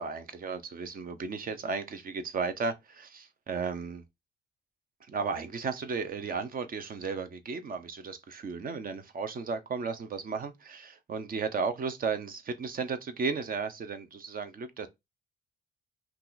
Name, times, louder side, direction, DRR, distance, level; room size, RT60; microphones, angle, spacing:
voice 1, 0.0-4.0 5.1-14.9, right 5 dB, 45° right, 0.7 m, -34 dB
2.8 x 2.4 x 3.9 m
cardioid pair, 90°, 20 cm